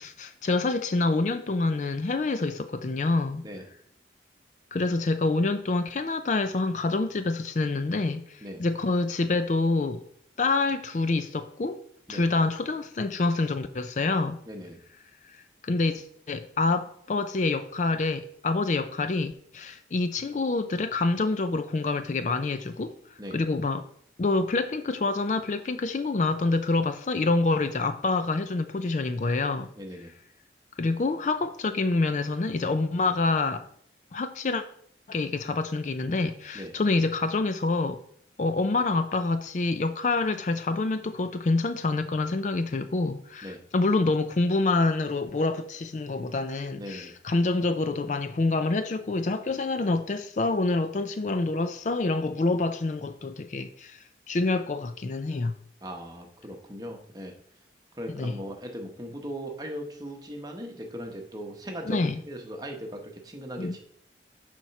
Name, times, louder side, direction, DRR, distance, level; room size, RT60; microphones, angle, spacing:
voice 1, 0.0-3.5 4.7-10.0 10.4-11.8 12.1-14.4 15.2-22.9 23.3-23.9 24.2-29.7 30.8-33.7 34.1-34.6 35.1-38.0 38.4-55.6 58.1-58.4 61.9-62.2 63.6-63.8, left 3 dB, 40° left, 0.4 m, -27 dB
voice 2, 14.5-14.8 23.2-23.4 29.7-30.1 36.5-36.7 43.4-43.6 46.8-47.1 55.8-57.3 57.9-63.8, equal, 20° right, 1.0 m, -38 dB
7.0 x 4.4 x 5.8 m
head